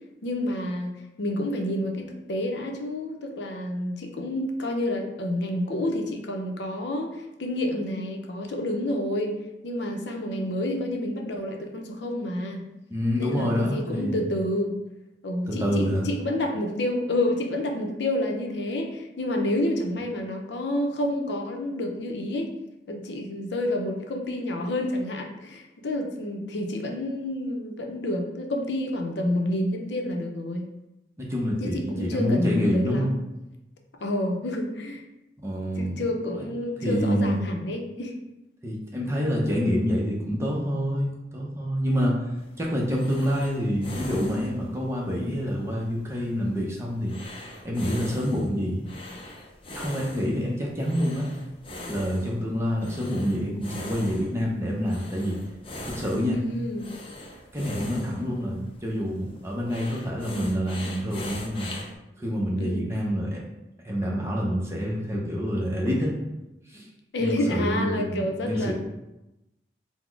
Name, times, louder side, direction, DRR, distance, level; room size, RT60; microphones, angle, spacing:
voice 1, 0.2-9.3 9.6-12.6 13.2-14.7 15.2-22.5 22.9-30.7 31.6-33.2 34.0-35.0 35.8-38.1 56.3-56.9 62.6-62.9 67.1-68.7, left 1 dB, 80° left, 2 dB, 0.6 m, -29 dB
voice 2, 12.9-14.3 15.5-16.0 31.2-33.1 35.4-36.0 36.4-36.5 36.8-37.4 38.6-42.2 42.6-47.1 47.6-48.8 49.7-51.3 51.9-55.4 55.8-56.4 57.5-61.7 62.2-63.4 63.8-66.1 66.7-66.9 67.2-68.2 68.4-68.7, equal, 15° right, -3 dB, 0.6 m, -27 dB
sound 1, 42.4-61.9, left 1 dB, 30° left, 0.5 m, -42 dB
4.0 x 2.0 x 4.5 m, 0.95 s
head